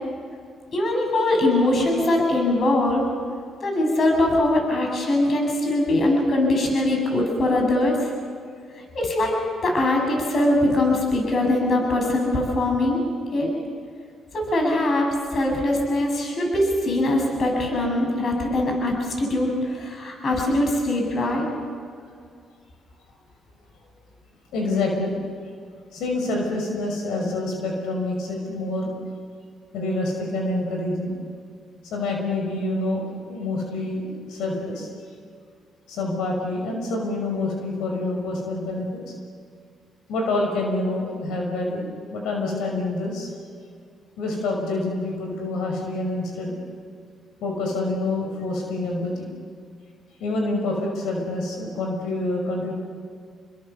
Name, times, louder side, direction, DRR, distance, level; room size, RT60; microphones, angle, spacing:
voice 1, 0.7-3.0 3.6-8.1 8.8-9.4 9.6-13.0 13.3-13.5 14.3-21.5, left 1 dB, 50° left, 1 dB, 7.3 m, -22 dB
voice 2, 24.5-25.1 25.9-28.9 29.7-31.2 31.8-33.0 33.3-34.9 35.9-39.0 40.1-41.8 42.1-43.3 44.2-46.6 47.4-49.3 50.2-52.7, left 2 dB, 90° left, 1 dB, 5.9 m, -27 dB
29.5 x 22.0 x 7.1 m, 2.2 s
cardioid pair, 90°, 0 cm